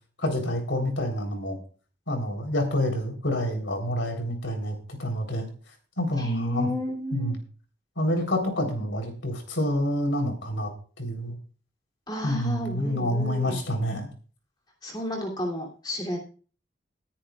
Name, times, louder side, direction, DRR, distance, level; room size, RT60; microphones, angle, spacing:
voice 1, 0.2-1.6 2.1-5.5 6.0-6.7 7.1-7.4 8.0-10.7 11.0-11.4 12.2-14.1, left 1 dB, 90° left, 3 dB, 3.8 m, -28 dB
voice 2, 6.2-7.4 12.1-13.6 14.8-16.2, left 1 dB, 20° left, 0 dB, 2.9 m, -32 dB
19.5 x 10.0 x 2.4 m, 0.39 s
head